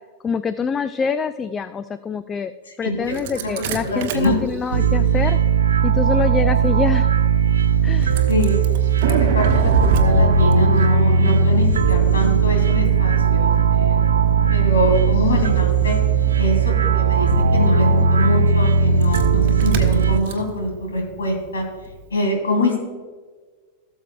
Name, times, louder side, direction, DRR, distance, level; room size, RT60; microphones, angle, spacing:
voice 1, 0.2-2.5 2.8-5.4 5.8-7.1 7.8-8.2, left 6 dB, 20° left, 13 dB, 0.3 m, -25 dB
voice 2, 2.8-4.4 8.3-8.6 9.0-14.0 14.5-16.0 16.4-21.6 22.1-22.8, left 1 dB, 70° left, 2 dB, 2.4 m, -24 dB
Engine starting, 3.0-22.0, right 3 dB, 50° right, 1.0 m, -29 dB
sound 1, 4.7-20.2, right 5 dB, 70° right, 0.5 m, -17 dB
17.0 x 7.3 x 2.2 m, 1.5 s
figure-of-eight pair, 90°, 0 cm